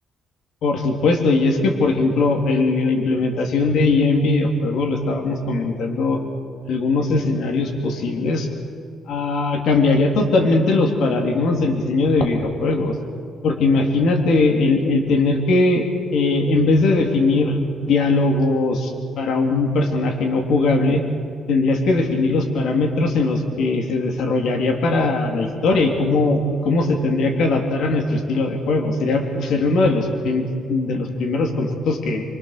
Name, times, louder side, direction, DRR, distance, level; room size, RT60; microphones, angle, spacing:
voice 1, 0.6-6.2 6.7-8.5 9.1-13.0 13.4-21.0 21.5-32.2, left 3 dB, 75° left, 2 dB, 3.5 m, -20 dB
26.0 x 26.0 x 6.9 m, 2.2 s
cardioid pair, 90°, 0 cm